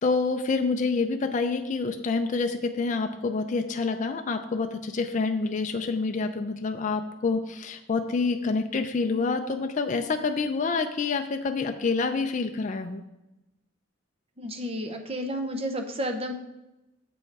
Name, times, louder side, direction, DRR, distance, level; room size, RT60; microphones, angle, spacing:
voice 1, 0.0-13.0, left 4 dB, 35° left, 6 dB, 0.4 m, -27 dB
voice 2, 14.4-16.3, equal, 30° right, 5 dB, 0.7 m, -31 dB
7.2 x 5.4 x 4.7 m, 0.96 s
head